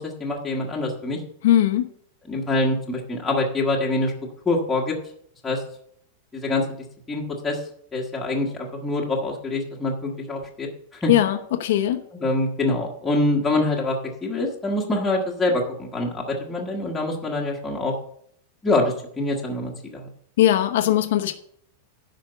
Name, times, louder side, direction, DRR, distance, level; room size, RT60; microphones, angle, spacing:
voice 1, 0.0-1.2 2.3-4.1 4.4-4.9 5.4-5.6 6.3-6.6 7.1-7.6 7.9-10.7 11.0-11.1 12.1-17.9 18.6-20.1, left 2 dB, 5° left, -3 dB, 1.3 m, -25 dB
voice 2, 1.4-1.9 11.1-12.0 20.4-21.3, left 12 dB, 60° left, 7 dB, 0.8 m, -19 dB
10.5 x 5.1 x 6.8 m, 0.65 s
supercardioid pair, 175°, 0 cm